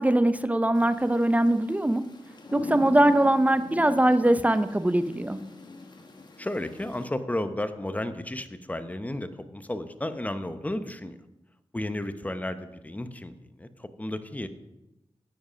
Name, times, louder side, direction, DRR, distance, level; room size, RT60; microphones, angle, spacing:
voice 1, 0.0-2.0 2.5-5.4, right 1 dB, 15° right, 12 dB, 0.6 m, -22 dB
sound 1, 0.7-7.1, left 3 dB, 45° left, 1.4 m, -41 dB
voice 2, 6.4-11.1 11.7-13.3 13.6-14.5, left 1 dB, 15° left, 10 dB, 0.8 m, -33 dB
10.0 x 8.0 x 5.1 m, 0.97 s
cardioid pair, 70°, 10 cm